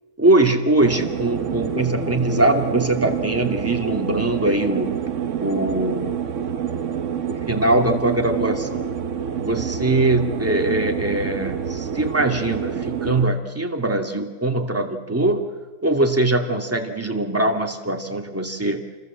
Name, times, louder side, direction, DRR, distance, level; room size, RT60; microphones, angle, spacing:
voice 1, 0.2-5.0 5.4-6.2 7.3-8.9 9.4-15.4 15.8-18.8, right 2 dB, 10° right, 3 dB, 2.3 m, -22 dB
sound 1, 0.8-13.3, right 8 dB, 55° right, 1.1 m, -27 dB
29.0 x 21.0 x 7.5 m, 1.3 s
omnidirectional pair, 1.8 m